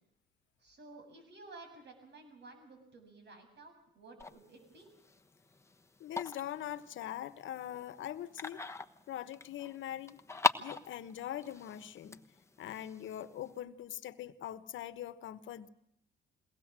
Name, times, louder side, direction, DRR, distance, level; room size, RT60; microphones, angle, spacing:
voice 1, 0.6-4.9, right 3 dB, 60° right, 5 dB, 7.8 m, -54 dB
sound 1, 4.2-13.6, left 3 dB, 15° left, 1.1 m, -40 dB
voice 2, 6.0-8.6 9.1-10.2 10.6-12.2 12.6-15.7, left 11 dB, 75° left, 13 dB, 1.2 m, -42 dB
22.5 x 18.5 x 7.5 m, 0.76 s
cardioid pair, 90°, 20 cm